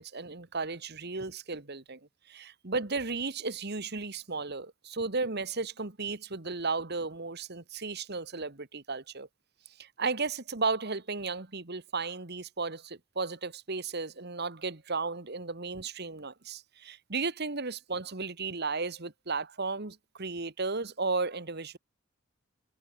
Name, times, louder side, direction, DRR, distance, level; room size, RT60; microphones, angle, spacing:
voice 1, 0.0-2.0 2.3-9.3 9.8-21.8, right 4 dB, 50° right, 1.6 m, -34 dB
head